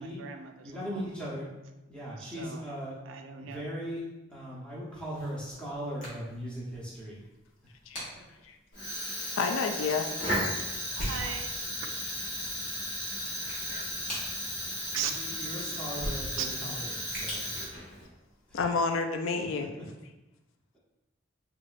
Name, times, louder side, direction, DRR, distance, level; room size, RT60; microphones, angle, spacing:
voice 1, 0.0-1.1 2.2-2.7 3.0-3.7 11.0-11.5 14.9-15.1 16.4-16.5, right 8 dB, 75° right, 6 dB, 0.3 m, -38 dB
voice 2, 0.6-1.5 1.9-3.0 3.4-7.2 8.1-8.2 15.0-17.5 18.5-18.6 19.3-19.8, equal, 5° left, -8 dB, 0.9 m, -39 dB
sound 1, 4.9-18.6, equal, 40° left, 1.2 m, -45 dB
Fire, 8.7-18.0, equal, 65° left, 1.5 m, -35 dB
voice 3, 9.4-10.1 11.1-11.2 18.5-19.7, left 4 dB, 85° left, 5 dB, 0.4 m, -29 dB
3.4 x 2.9 x 2.5 m, 1.0 s
head